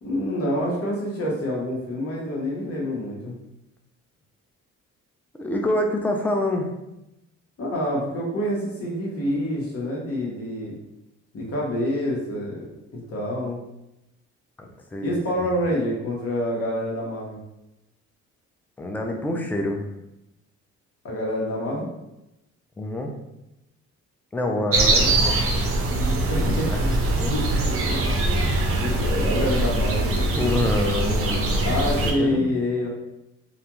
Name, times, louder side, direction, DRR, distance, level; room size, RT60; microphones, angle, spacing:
voice 1, 0.0-3.3 7.6-10.8 11.3-12.7 12.9-13.6 15.0-17.4 21.0-21.9 24.5-24.6 26.3-26.7 27.3-27.4 27.8-28.1 28.7-30.4 31.6-32.9, left 1 dB, 50° left, -2 dB, 1.0 m, -27 dB
voice 2, 5.3-6.7 14.6-15.6 18.8-19.9 22.8-23.1 24.3-25.4 26.7-26.9 27.2-27.3 30.3-32.5, left 1 dB, 5° left, 2 dB, 0.3 m, -27 dB
sound 1, 24.7-32.1, right 2 dB, 50° right, 0.5 m, -22 dB
2.4 x 2.2 x 2.9 m, 0.89 s
cardioid pair, 90°, 30 cm